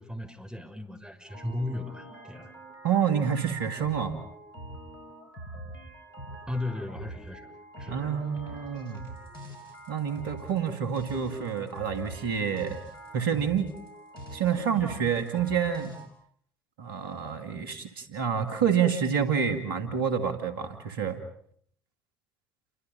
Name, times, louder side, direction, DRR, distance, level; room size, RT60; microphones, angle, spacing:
voice 1, 0.0-2.5 6.5-8.1, left 2 dB, 5° right, 4 dB, 6.1 m, -36 dB
sound 1, 1.3-16.1, right 1 dB, 85° left, 5.5 m, -45 dB
voice 2, 2.8-4.2 7.9-9.0 9.9-12.8 13.1-13.7 14.3-16.0 16.8-21.2, right 7 dB, 80° right, 8 dB, 2.5 m, -28 dB
30.0 x 24.5 x 5.5 m, 0.63 s
figure-of-eight pair, 50°, 11 cm